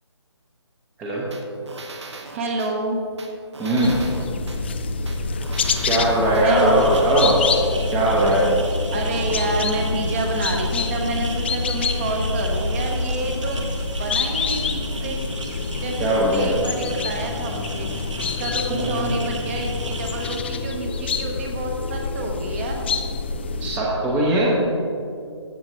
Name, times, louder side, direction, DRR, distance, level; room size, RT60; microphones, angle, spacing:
sound 1, 1.3-2.7 3.2-4.6 5.1-6.5 6.9-7.1, right 3 dB, 70° right, 1.3 m, -39 dB
voice 1, 2.3-3.0 6.4-6.8 8.9-15.2 15.8-22.9, right 2 dB, 25° right, 2 dB, 1.1 m, -29 dB
voice 2, 3.6-4.0 5.9-7.4 7.9-8.5 16.0-16.6 18.7-19.1 23.6-24.6, right 1 dB, 10° right, -5 dB, 0.9 m, -20 dB
sound 2, 3.8-23.8, left 4 dB, 25° left, 0.3 m, -26 dB
sound 3, 6.4-20.4, right 2 dB, 90° right, 1.3 m, -36 dB
14.5 x 7.6 x 3.1 m, 2.5 s
figure-of-eight pair, 155°, 15 cm